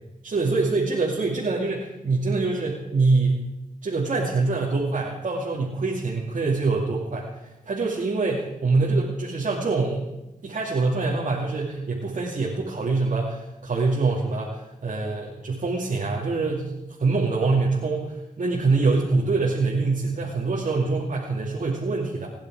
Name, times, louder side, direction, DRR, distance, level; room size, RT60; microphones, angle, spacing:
voice 1, 0.2-3.4 3.8-7.4 7.7-10.0 10.4-22.3, right 3 dB, 65° right, -3 dB, 2.5 m, -24 dB
24.5 x 10.5 x 4.8 m, 0.99 s
cardioid pair, 60°, 14 cm